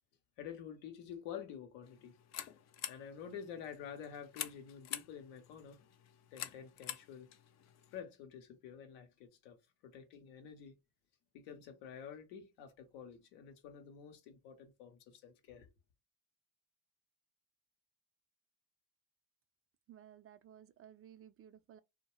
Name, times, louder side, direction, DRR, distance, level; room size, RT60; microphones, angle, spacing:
voice 1, 0.4-2.2 2.9-5.8 6.3-7.3 7.9-10.7 11.3-15.7, left 8 dB, 80° left, 0.8 m, -49 dB
sound 1, 1.8-8.0, left 10 dB, 40° left, 0.4 m, -48 dB
voice 2, 19.9-21.8, right 10 dB, 35° right, 0.4 m, -57 dB
2.2 x 2.1 x 3.0 m
hypercardioid pair, 60°, 42 cm